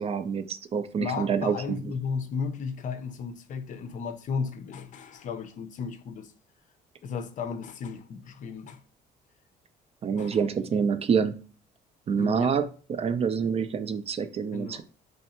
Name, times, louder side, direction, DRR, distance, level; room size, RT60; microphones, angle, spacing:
voice 1, 0.0-1.8 10.0-11.4 12.1-12.6 12.9-14.8, right 6 dB, 35° right, 0.4 m, -27 dB
voice 2, 1.0-6.3 7.0-8.8 10.2-10.4 12.2-12.5 14.5-14.8, left 5 dB, 50° left, 0.5 m, -34 dB
3.3 x 2.7 x 4.2 m
cardioid pair, 110°, 17 cm